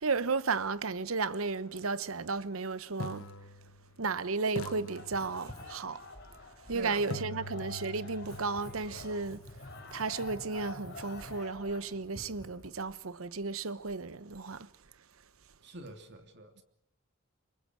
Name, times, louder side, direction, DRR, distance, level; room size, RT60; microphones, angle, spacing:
voice 1, 0.0-3.2 4.0-6.0 6.7-9.4 9.9-14.7, right 4 dB, 75° right, 0.9 m, -34 dB
sound 1, 1.9-2.0 3.0-4.2 4.6-5.8 7.1-11.0, left 2 dB, 80° left, 1.3 m, -45 dB
sound 2, 4.9-11.8, left 3 dB, 50° left, 3.6 m, -48 dB
Writing, 5.0-12.7, equal, 15° left, 7.3 m, -52 dB
voice 2, 6.7-7.6 15.6-16.6, right 2 dB, 50° right, 3.0 m, -46 dB
27.5 x 23.5 x 6.3 m
head